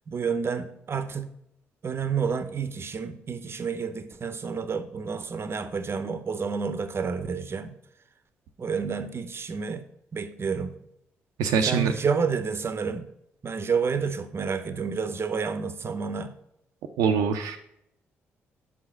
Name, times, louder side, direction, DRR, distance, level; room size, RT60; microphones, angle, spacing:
voice 1, 0.1-1.3 1.8-7.8 8.6-9.9 10.1-10.7 11.6-13.1 13.4-16.4, right 5 dB, 40° right, 0.7 m, -29 dB
voice 2, 11.4-11.9 17.0-17.6, right 6 dB, 75° right, 0.5 m, -23 dB
5.3 x 4.9 x 6.3 m
hypercardioid pair, 45°, 6 cm